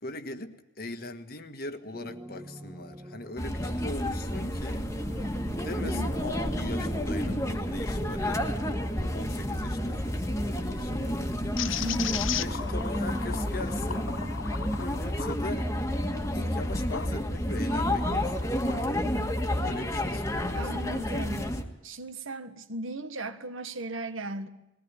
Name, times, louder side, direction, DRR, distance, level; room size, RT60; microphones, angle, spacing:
voice 1, 0.0-4.9 5.6-8.6 8.9-11.5 12.4-14.2 14.8-15.7 16.3-18.7 19.6-20.7, left 2 dB, 45° left, 1.6 m, -40 dB
sound 1, 1.9-12.0, right 1 dB, 20° right, 1.0 m, -42 dB
sound 2, 3.4-21.6, left 1 dB, 15° left, 1.7 m, -30 dB
voice 2, 5.8-6.1 11.8-12.3 20.5-21.5 21.8-24.5, right 1 dB, 75° right, 1.6 m, -37 dB
sound 3, 11.6-17.1 17.6-18.8, left 9 dB, 70° left, 0.7 m, -37 dB
21.0 x 17.5 x 9.9 m
head